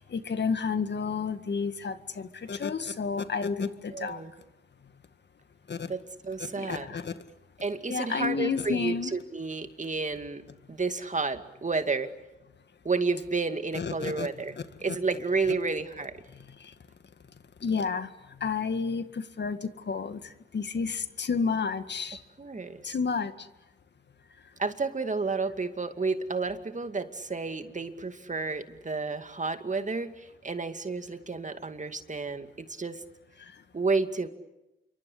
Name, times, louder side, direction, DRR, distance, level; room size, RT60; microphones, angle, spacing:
voice 1, 0.0-4.2 5.7-5.9 6.4-7.1 7.9-9.1 13.7-14.3 16.6-16.7 17.6-18.1 18.4-22.2 22.8-23.3, left 5 dB, 60° left, 10 dB, 1.9 m, -31 dB
voice 2, 3.9-4.3 5.9-6.9 7.6-10.4 10.7-12.1 12.8-14.6 14.8-16.1 22.4-22.9 24.6-33.0 33.7-34.3, right 4 dB, 40° right, 8 dB, 2.4 m, -31 dB
27.5 x 24.0 x 8.6 m, 0.99 s
cardioid pair, 55°, 20 cm